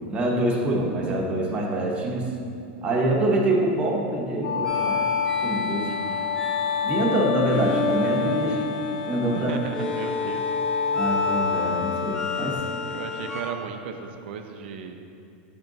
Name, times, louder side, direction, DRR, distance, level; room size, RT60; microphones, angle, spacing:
voice 1, 0.1-2.3 2.8-5.1 5.4-5.9 6.8-8.6 9.1-9.5 10.9-12.6, right 1 dB, 20° right, -1 dB, 0.7 m, -25 dB
sound 1, 4.4-12.5, left 7 dB, 65° left, 0.4 m, -27 dB
sound 2, 4.6-13.4, left 2 dB, 10° left, 0.8 m, -32 dB
voice 2, 5.9-6.3 9.3-10.6 12.9-15.1, right 6 dB, 80° right, 5 dB, 0.4 m, -35 dB
6.9 x 3.6 x 3.9 m, 2.6 s
supercardioid pair, 155°, 6 cm